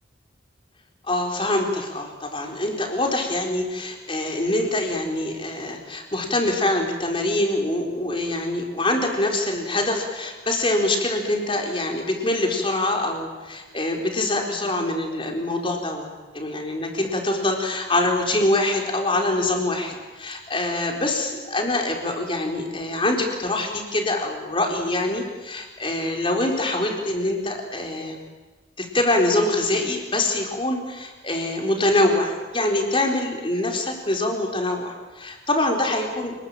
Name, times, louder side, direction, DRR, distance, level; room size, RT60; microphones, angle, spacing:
voice 1, 1.1-16.1 16.3-28.2 28.8-36.3, left 1 dB, 25° left, 2 dB, 4.3 m, -24 dB
28.5 x 21.0 x 9.0 m, 1.2 s
head